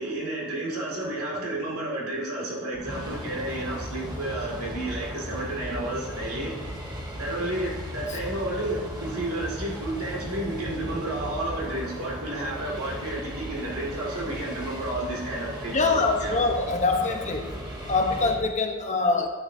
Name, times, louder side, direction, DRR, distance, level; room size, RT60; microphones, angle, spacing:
voice 1, 0.0-6.5 7.2-16.4, right 1 dB, 80° right, -3 dB, 2.3 m, -31 dB
sound 1, 2.7-18.3, equal, 20° right, 2.2 m, -36 dB
voice 2, 15.7-17.5 17.9-19.3, left 3 dB, 35° left, 3 dB, 1.0 m, -24 dB
11.0 x 10.5 x 2.7 m, 1.3 s
head